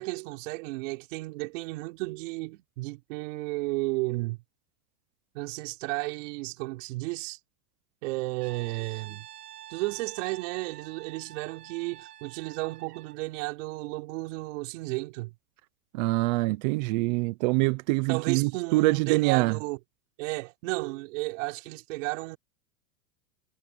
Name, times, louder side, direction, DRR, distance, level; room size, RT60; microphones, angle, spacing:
voice 1, 0.0-4.4 5.3-7.4 8.0-9.3 9.7-15.3 18.1-19.8 20.2-22.4, right 23 dB, 55° right, 4.0 m, -33 dB
Brass instrument, 8.4-13.2, right 13 dB, 85° right, 3.5 m, -47 dB
voice 2, 15.9-19.6, right 22 dB, 30° right, 0.5 m, -25 dB
supercardioid pair, 155°, 46 cm